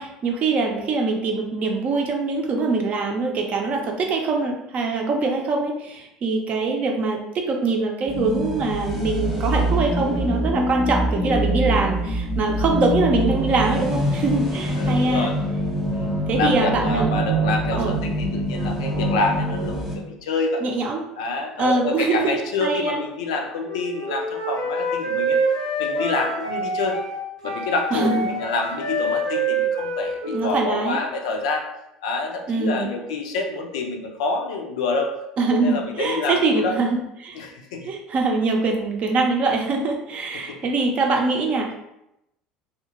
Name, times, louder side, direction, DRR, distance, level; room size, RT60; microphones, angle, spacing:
voice 1, 0.0-15.3 16.3-17.1 17.8-17.9 20.6-21.1 21.6-23.0 27.9-28.1 30.2-31.0 32.5-32.9 35.4-36.9 37.2-37.5 37.8-41.7, right 3 dB, 45° right, 1 dB, 0.6 m, -23 dB
sound 1, 8.1-20.0, right 1 dB, 5° right, 0.8 m, -24 dB
voice 2, 14.8-15.4 15.9-20.6 21.2-25.4 25.8-27.0 27.4-31.7 32.0-35.1 35.5-36.7 37.3-37.9 40.3-40.6, left 3 dB, 70° left, 3 dB, 0.4 m, -27 dB
Wind instrument woodwind instrument, 23.6-31.1, right 2 dB, 85° right, 0.8 m, -26 dB
2.7 x 2.4 x 2.8 m, 0.86 s
figure-of-eight pair, 65°, 3 cm